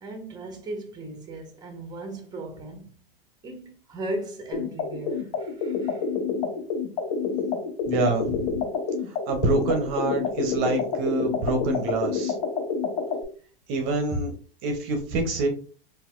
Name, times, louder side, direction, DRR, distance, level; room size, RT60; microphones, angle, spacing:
voice 1, 0.0-2.9 3.4-6.1 15.2-15.3, right 1 dB, 15° right, 0.9 m, -37 dB
sound 1, 4.5-13.2, left 5 dB, 65° left, 1.0 m, -28 dB
voice 2, 7.9-8.4 9.1-12.3 13.7-14.3 14.6-15.5, right 3 dB, 45° right, 0.8 m, -26 dB
4.0 x 2.6 x 2.4 m
hypercardioid pair, 125°, 30 cm